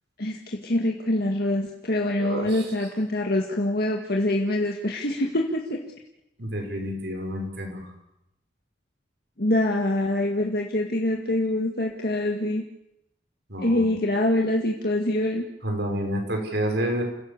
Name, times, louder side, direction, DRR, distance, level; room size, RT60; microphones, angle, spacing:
voice 1, 0.2-5.8 9.4-12.6 13.6-15.4, left 1 dB, 60° left, 0 dB, 1.9 m, -25 dB
voice 2, 2.2-2.6 6.4-7.8 13.5-13.8 15.6-17.0, equal, 70° right, 2 dB, 5.7 m, -29 dB
29.0 x 16.0 x 7.3 m, 0.84 s
head